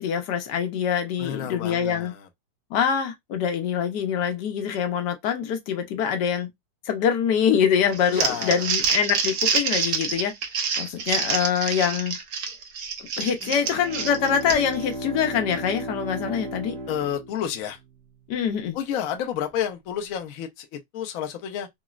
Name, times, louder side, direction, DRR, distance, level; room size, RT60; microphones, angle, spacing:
voice 1, 0.0-2.1 2.7-6.5 6.9-10.3 10.8-12.2 13.2-16.7 18.3-18.8, left 8 dB, 80° left, 1.3 m, -24 dB
voice 2, 1.2-2.2 8.1-8.6 16.9-17.8 18.7-21.7, left 9 dB, 65° left, 0.9 m, -30 dB
Crumpling crinkling, 7.9-14.8, right 6 dB, 75° right, 1.3 m, -27 dB
Bowed string instrument, 13.4-18.0, right 1 dB, 5° left, 0.7 m, -35 dB
4.0 x 2.0 x 2.3 m
omnidirectional pair, 1.8 m